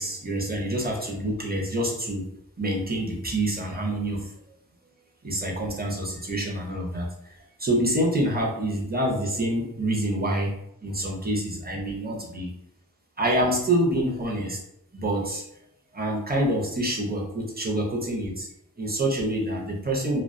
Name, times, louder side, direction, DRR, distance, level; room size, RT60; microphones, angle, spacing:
voice 1, 0.0-2.2 2.6-4.3 5.2-10.5 10.8-12.5 13.2-14.6 14.9-15.5 15.9-18.5 18.8-20.2, right 1 dB, 25° right, -2 dB, 0.6 m, -27 dB
2.3 x 2.2 x 2.5 m, 0.79 s
wide cardioid pair, 40°, 38 cm